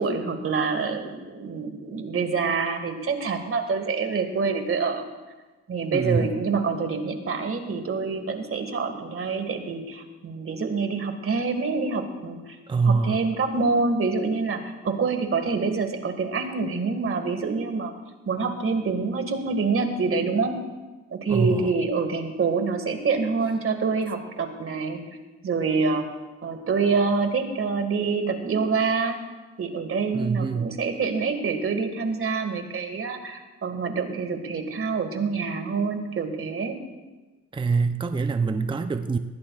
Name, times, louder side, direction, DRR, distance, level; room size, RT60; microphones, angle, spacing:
voice 1, 0.0-5.0 5.7-12.6 12.9-17.9 18.3-20.6 21.1-25.0 25.4-26.1 26.4-29.2 29.6-36.8, right 4 dB, 45° right, 6 dB, 2.0 m, -26 dB
voice 2, 5.9-6.3 12.7-13.3 21.3-21.7 30.1-30.8 37.5-39.2, right 4 dB, 15° right, 8 dB, 0.6 m, -24 dB
19.5 x 16.0 x 2.5 m, 1.2 s
cardioid pair, 90°, 30 cm